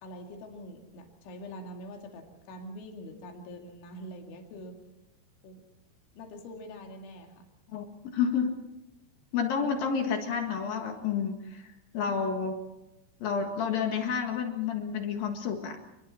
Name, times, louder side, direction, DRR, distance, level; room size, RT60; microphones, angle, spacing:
voice 1, 0.0-4.8 5.4-5.6 6.1-7.3 12.0-12.5, equal, 85° left, 2 dB, 5.0 m, -44 dB
voice 2, 8.1-8.5 9.3-12.6 13.2-15.8, left 6 dB, 60° left, 4 dB, 3.1 m, -30 dB
29.0 x 22.0 x 4.3 m, 0.92 s
omnidirectional pair, 5.3 m